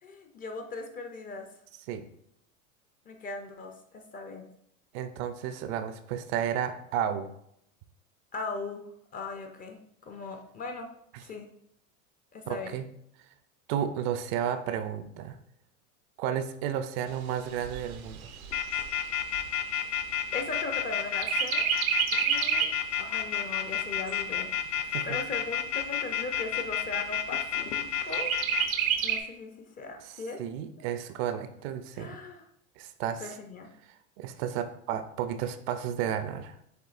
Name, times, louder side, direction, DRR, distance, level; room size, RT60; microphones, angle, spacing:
voice 1, 0.0-1.5 3.1-4.5 8.3-8.9 9.1-10.9 11.2-11.5 12.3-12.7 16.7-16.8 20.3-21.7 22.1-22.7 23.0-24.5 25.0-28.3 29.0-30.4 32.0-32.4 33.2-33.7, left 3 dB, 20° left, 5 dB, 0.4 m, -39 dB
voice 2, 4.9-7.3 11.1-11.2 12.5-12.8 13.7-15.4 16.2-18.3 24.9-25.2 30.0-32.2 32.8-33.3 34.2-36.6, right 9 dB, 50° right, 10 dB, 0.5 m, -32 dB
Chirp tweet, 17.1-20.8 21.2-22.9 23.3-23.4 23.8-24.8 25.4-25.5 25.8-25.9 26.3-26.9 28.1-29.2, right 8 dB, 90° right, 0.7 m, -30 dB
sound 1, 18.5-28.6, left 9 dB, 65° left, 0.7 m, -30 dB
7.9 x 2.6 x 2.5 m, 0.73 s
hypercardioid pair, 110°, 41 cm